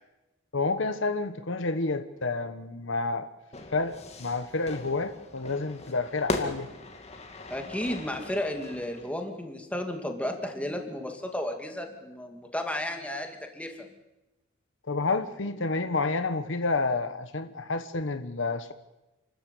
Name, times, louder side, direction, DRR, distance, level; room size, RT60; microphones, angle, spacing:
voice 1, 0.5-3.3 3.7-6.7 14.9-18.7, left 3 dB, 65° left, 10 dB, 1.2 m, -29 dB
Fire / Fireworks, 3.5-9.1, left 2 dB, 35° left, 2.4 m, -38 dB
voice 2, 7.5-13.9, left 1 dB, 5° left, 4 dB, 2.5 m, -33 dB
29.0 x 13.5 x 8.3 m, 1.0 s
head